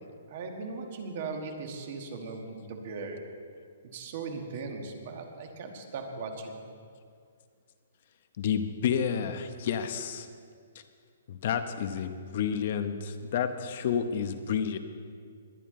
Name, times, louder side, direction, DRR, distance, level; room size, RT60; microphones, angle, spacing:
voice 1, 0.3-3.2 3.9-6.6, right 4 dB, 35° right, 4 dB, 1.5 m, -38 dB
voice 2, 8.4-10.3 11.3-14.8, left 7 dB, 40° left, 9 dB, 0.9 m, -30 dB
20.5 x 11.0 x 3.8 m, 2.2 s
hypercardioid pair, 175°, 0 cm